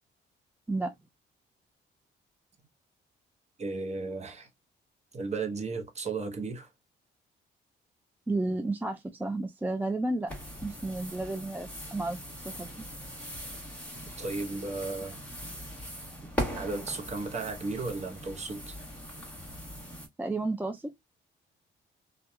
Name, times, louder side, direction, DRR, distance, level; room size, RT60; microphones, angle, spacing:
voice 1, 3.6-4.5 5.1-6.7 14.2-15.2 16.5-18.8, right 3 dB, 35° right, 0.9 m, -35 dB
voice 2, 8.3-10.3 10.6-12.2 12.6-12.9 20.2-20.9, right 2 dB, 10° right, 0.3 m, -32 dB
sound 1, 10.3-20.1, equal, 5° left, 1.2 m, -40 dB
2.7 x 2.3 x 2.2 m
cardioid pair, 90°, 20 cm